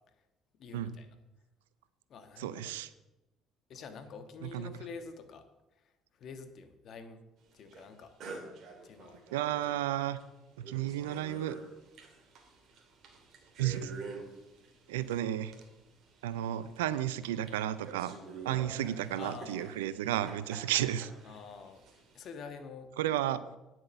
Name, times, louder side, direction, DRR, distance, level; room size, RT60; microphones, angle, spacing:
voice 1, 0.6-1.1 2.1-2.7 3.7-5.5 5.8-5.9 6.2-7.2 7.5-8.2 8.8-9.2 9.6-9.8 19.2-19.7 21.2-21.8 22.1-22.9, left 5 dB, 60° left, 8 dB, 1.5 m, -47 dB
voice 2, 2.4-2.9 4.4-4.7 9.3-10.2 10.7-11.6 13.6-13.9 14.9-15.5 16.2-18.1 18.4-21.1 23.0-23.4, right 12 dB, 85° right, 15 dB, 0.6 m, -32 dB
sound 1, 7.7-7.9 8.2-9.8 10.2-10.3 10.5-22.3, right 4 dB, 60° right, 2.5 m, -48 dB
10.0 x 7.6 x 6.8 m, 0.99 s
hypercardioid pair, 60°, 0 cm